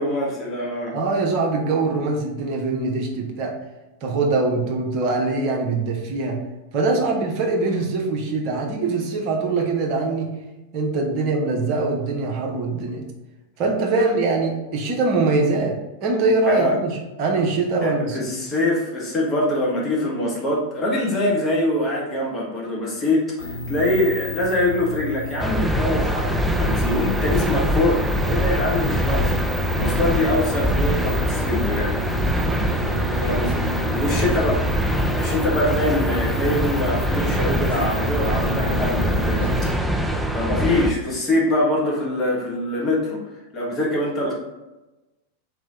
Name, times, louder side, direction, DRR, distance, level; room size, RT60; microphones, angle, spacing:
voice 1, 0.0-1.0 16.5-16.8 17.8-31.9 33.2-34.7 35.1-39.5 40.3-43.2 43.5-44.3, left 1 dB, 20° left, -4 dB, 1.3 m, -24 dB
voice 2, 0.9-3.5 4.0-6.4 6.7-10.3 10.7-13.0 13.6-18.3, right 3 dB, 40° right, 0 dB, 0.9 m, -23 dB
sound 1, 23.4-39.7, left 1 dB, 80° left, 0.8 m, -31 dB
sound 2, 25.4-40.9, equal, 5° right, 0.4 m, -23 dB
3.6 x 3.2 x 3.7 m, 1.0 s
figure-of-eight pair, 90°, 0 cm